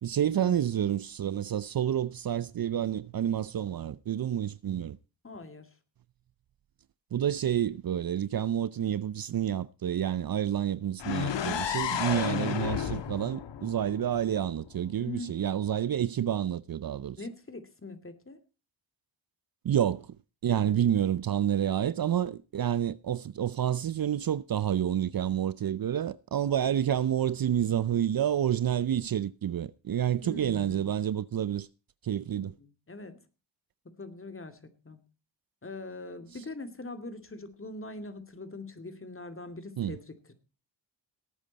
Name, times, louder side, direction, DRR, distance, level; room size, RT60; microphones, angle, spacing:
voice 1, 0.0-5.0 7.1-17.2 19.6-20.1 20.4-31.7 32.0-32.5 39.8-40.0, right 10 dB, 50° right, 0.7 m, -29 dB
voice 2, 5.2-5.7 15.0-15.4 17.2-18.4 20.5-20.8 30.2-30.9 32.4-33.2 33.8-34.6 34.8-35.0 35.6-40.3, left 2 dB, 30° left, 2.6 m, -42 dB
sound 1, 11.0-14.9, left 8 dB, 70° left, 1.6 m, -32 dB
18.0 x 9.1 x 4.1 m
cardioid pair, 55°, 45 cm